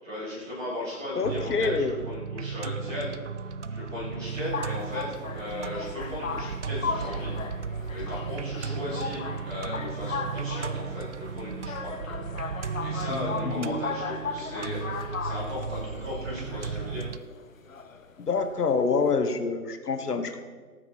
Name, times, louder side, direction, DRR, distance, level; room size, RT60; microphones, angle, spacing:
voice 1, 0.0-7.3 7.9-12.2 12.8-14.8 15.2-17.1, left 1 dB, ahead, -17 dB, 0.8 m, -37 dB
voice 2, 1.1-1.9 13.1-13.7 18.2-20.4, left 4 dB, 75° left, 7 dB, 1.5 m, -27 dB
sound 1, 1.2-17.2, right 5 dB, 50° right, 0.5 m, -35 dB
sound 2, 4.3-19.1, left 5 dB, 55° left, 1.2 m, -37 dB
18.0 x 9.3 x 4.6 m, 1.5 s
hypercardioid pair, 170°, 47 cm